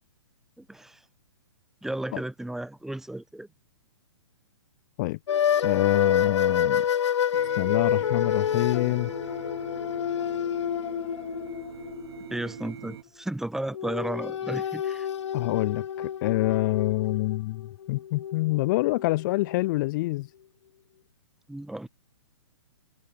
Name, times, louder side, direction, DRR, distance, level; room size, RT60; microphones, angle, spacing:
voice 1, 0.6-1.0 1.8-3.5 12.3-15.1 21.5-21.9, right 1 dB, 5° right, 3.0 m, -34 dB
sound 1, 5.3-12.6 13.7-19.8, left 9 dB, 75° left, 0.4 m, -28 dB
voice 2, 5.6-6.9 7.6-9.1 15.3-20.3, left 20 dB, 40° left, 1.9 m, -26 dB
sound 2, 7.3-13.0, right 11 dB, 55° right, 2.9 m, -43 dB
hypercardioid pair, 125°, 15 cm